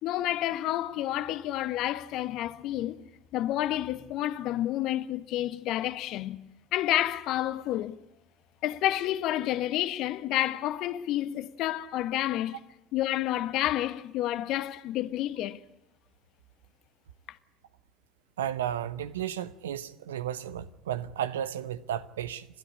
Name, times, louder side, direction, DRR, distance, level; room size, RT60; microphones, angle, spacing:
voice 1, 0.0-3.0 3.3-6.4 6.7-8.0 8.6-12.6 12.9-15.6, left 13 dB, 55° left, 1.2 m, -29 dB
voice 2, 18.4-22.5, right 10 dB, 75° right, 0.9 m, -33 dB
29.5 x 13.0 x 9.8 m
figure-of-eight pair, 60°, 0 cm